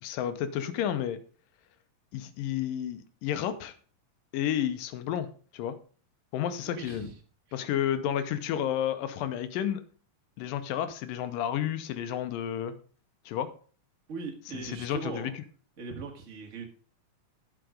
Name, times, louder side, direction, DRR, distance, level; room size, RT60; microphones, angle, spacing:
voice 1, 0.0-1.2 2.1-3.7 4.3-5.3 5.5-5.8 6.3-7.1 7.5-9.8 10.4-12.7 13.3-13.5 14.5-15.3, left 10 dB, 90° left, 11 dB, 2.5 m, -31 dB
voice 2, 6.6-7.1 7.5-7.6 14.1-15.3 15.8-16.6, right 4 dB, 30° right, 3 dB, 1.4 m, -40 dB
11.5 x 5.9 x 5.1 m, 0.41 s
omnidirectional pair, 3.9 m